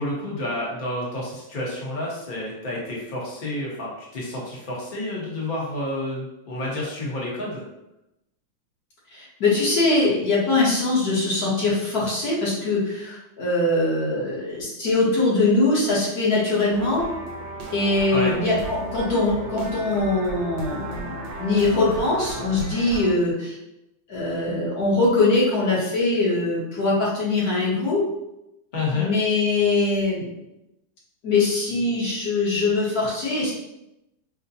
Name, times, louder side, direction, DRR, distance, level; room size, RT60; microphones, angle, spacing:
voice 1, 0.0-7.6 18.1-18.3 28.7-29.1, left 1 dB, 35° left, -4 dB, 0.8 m, -29 dB
voice 2, 9.1-17.1 17.7-23.6 24.1-28.0 28.9-30.4 31.2-33.5, left 2 dB, 55° left, -6 dB, 1.4 m, -22 dB
sound 1, 16.7-23.1, right 2 dB, 75° right, 1.3 m, -35 dB
5.2 x 2.1 x 2.7 m, 0.89 s
omnidirectional pair, 2.1 m